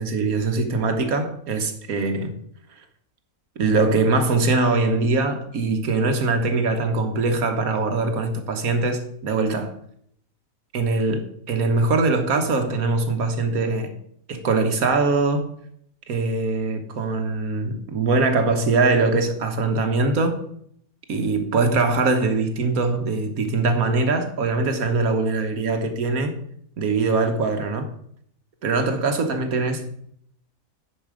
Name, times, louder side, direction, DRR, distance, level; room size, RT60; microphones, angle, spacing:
voice 1, 0.0-2.3 3.6-9.7 10.7-13.9 14.3-15.5 16.1-20.4 21.1-26.4 26.8-27.9 28.6-29.9, right 3 dB, 75° right, 1.6 m, -22 dB
9.8 x 5.0 x 4.9 m
omnidirectional pair, 1.5 m